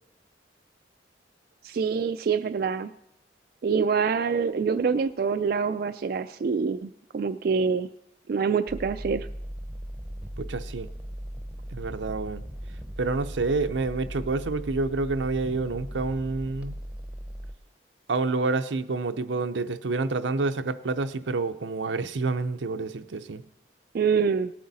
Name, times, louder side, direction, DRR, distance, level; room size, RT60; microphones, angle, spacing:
voice 1, 1.6-2.9 3.6-7.9 8.3-9.3 23.9-24.5, right 5 dB, 55° right, 0.3 m, -25 dB
sound 1, 8.7-17.5, equal, 5° right, 0.7 m, -38 dB
voice 2, 10.4-10.9 11.7-12.4 13.0-16.8 18.1-23.4, right 3 dB, 90° right, 0.6 m, -28 dB
18.5 x 8.6 x 4.1 m
head